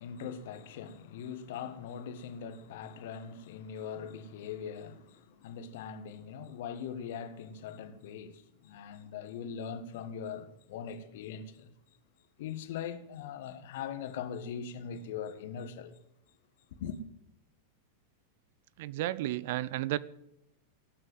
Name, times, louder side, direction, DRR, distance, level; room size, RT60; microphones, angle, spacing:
voice 1, 0.0-11.7 12.4-16.0 16.8-17.0, left 7 dB, 55° left, 1.7 m, -41 dB
voice 2, 18.8-20.0, right 15 dB, 50° right, 0.6 m, -32 dB
18.5 x 8.7 x 7.8 m
figure-of-eight pair, 90°, 0 cm